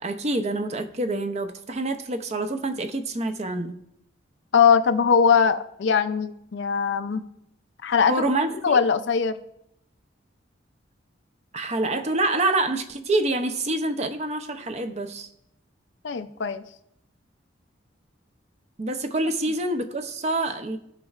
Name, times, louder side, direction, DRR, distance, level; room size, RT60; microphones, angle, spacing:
voice 1, 0.0-3.8 8.1-8.8 11.5-15.3 18.8-20.8, right 2 dB, 35° right, 8 dB, 0.6 m, -26 dB
voice 2, 4.5-7.2 7.8-8.1 8.6-9.4 16.0-16.6, left 6 dB, 65° left, 11 dB, 0.4 m, -21 dB
15.5 x 5.3 x 2.4 m, 0.78 s
head